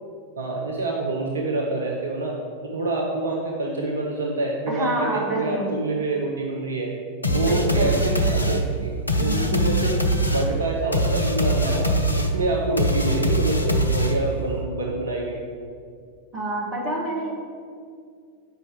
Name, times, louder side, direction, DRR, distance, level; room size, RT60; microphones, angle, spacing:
voice 1, 0.4-2.4 2.6-6.9 7.3-9.9 10.2-15.4, right 2 dB, 70° right, -1 dB, 0.8 m, -26 dB
voice 2, 4.7-5.8 7.3-8.4 9.2-9.9 16.3-17.3, right 1 dB, 35° right, -2 dB, 1.8 m, -29 dB
sound 1, 7.2-14.4, equal, 85° left, 0.6 m, -23 dB
8.1 x 5.5 x 4.7 m, 2.2 s
figure-of-eight pair, 90°, 0 cm